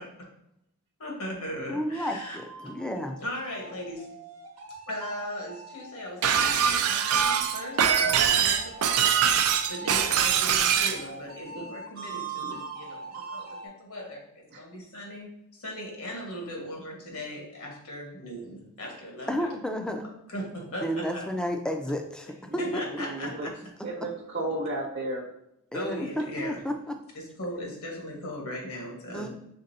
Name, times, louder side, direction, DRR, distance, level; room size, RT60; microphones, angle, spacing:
voice 1, 1.0-2.4 3.2-4.1 4.9-9.3 9.7-19.5 20.3-21.3 22.6-23.5 25.7-26.6 27.1-29.3, equal, 70° left, -1 dB, 1.5 m, -38 dB
voice 2, 1.7-3.2 19.3-20.0 20.8-22.8 25.7-27.0 29.1-29.3, equal, 5° left, 4 dB, 0.4 m, -31 dB
sound 1, 1.9-13.7, right 4 dB, 90° right, 0.9 m, -41 dB
Shatter, 6.2-11.0, right 8 dB, 70° right, 0.4 m, -23 dB
voice 3, 9.7-10.2 11.4-11.7 14.5-14.6 22.5-23.5 23.8-25.3 29.1-29.3, right 1 dB, 55° right, 0 dB, 0.9 m, -35 dB
5.3 x 3.7 x 2.7 m, 0.79 s
head